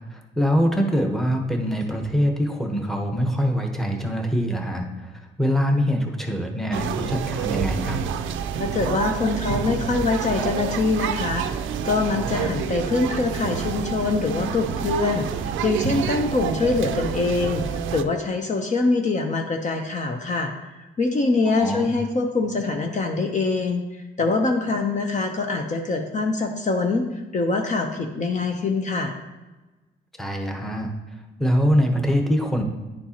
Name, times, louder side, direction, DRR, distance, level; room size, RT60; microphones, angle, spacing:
voice 1, 0.1-4.9 5.4-8.0 12.4-12.5 21.6-21.9 30.2-30.9 31.4-32.6, equal, ahead, 2 dB, 1.0 m, -23 dB
sound 1, 6.7-18.0, right 8 dB, 80° right, 0.5 m, -28 dB
voice 2, 8.6-20.5 21.0-23.8 24.2-29.1, left 3 dB, 35° left, 3 dB, 0.7 m, -24 dB
10.5 x 4.4 x 2.9 m, 1.1 s
cardioid pair, 90°, 20 cm